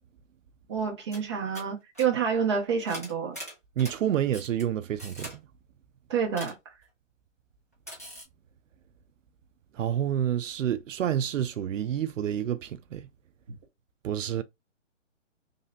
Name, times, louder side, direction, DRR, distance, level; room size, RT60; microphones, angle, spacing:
voice 1, 0.7-3.4 6.1-6.5, right 6 dB, 25° right, 0.8 m, -28 dB
sound 1, 0.8-0.9 1.1-1.3 1.5-2.0 2.9-4.0 4.3-4.6 5.0-5.4 6.3-6.5 7.9-8.2, equal, 15° left, 0.4 m, -41 dB
voice 2, 3.8-5.4 9.8-13.1 14.0-14.4, right 10 dB, 80° right, 0.5 m, -28 dB
3.3 x 2.7 x 2.5 m
hypercardioid pair, 165°, 38 cm